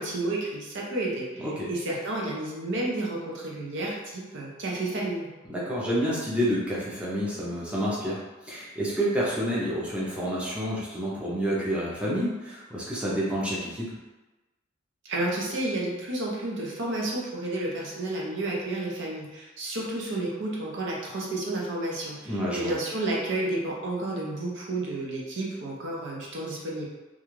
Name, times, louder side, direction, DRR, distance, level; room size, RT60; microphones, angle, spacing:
voice 1, 0.0-5.3 15.0-26.9, right 2 dB, 65° right, -3 dB, 0.6 m, -31 dB
voice 2, 1.4-1.7 5.5-13.9 22.2-22.7, equal, 5° right, -7 dB, 0.5 m, -29 dB
2.4 x 2.3 x 3.1 m, 1.1 s
head